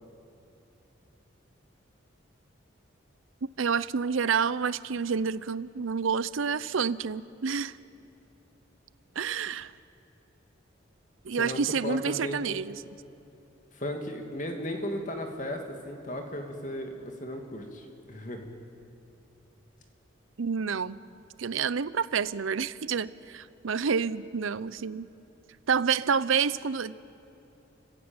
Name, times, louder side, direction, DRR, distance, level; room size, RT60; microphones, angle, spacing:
voice 1, 3.4-7.7 9.2-9.7 11.2-12.8 20.4-21.0 21.4-25.1 25.7-27.0, right 6 dB, 80° right, 17 dB, 0.6 m, -28 dB
voice 2, 11.4-12.4 13.7-18.5, left 1 dB, 40° left, 3 dB, 2.4 m, -36 dB
30.0 x 15.5 x 8.8 m, 2.9 s
head